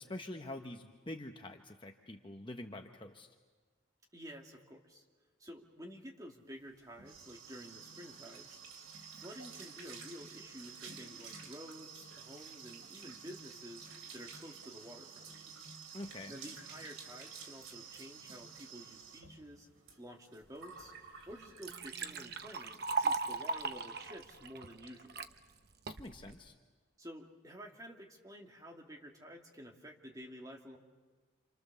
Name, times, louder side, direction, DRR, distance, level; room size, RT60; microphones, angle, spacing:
voice 1, 0.0-3.3 15.9-16.3 26.0-26.5, left 1 dB, 25° left, 4 dB, 1.0 m, -46 dB
voice 2, 4.1-5.0 5.4-8.6 9.1-15.3 16.3-19.7 20.0-20.9 21.3-25.3 27.0-30.8, equal, 20° right, 1 dB, 2.5 m, -51 dB
sound 1, 6.6-22.3 22.7-23.0 23.3-23.4 23.7-24.1, right 5 dB, 90° right, 3.8 m, -51 dB
Liquid, 20.8-20.9 21.3-25.3 25.9-26.3, right 4 dB, 50° right, 1.0 m, -37 dB
29.5 x 28.0 x 6.9 m, 1.4 s
head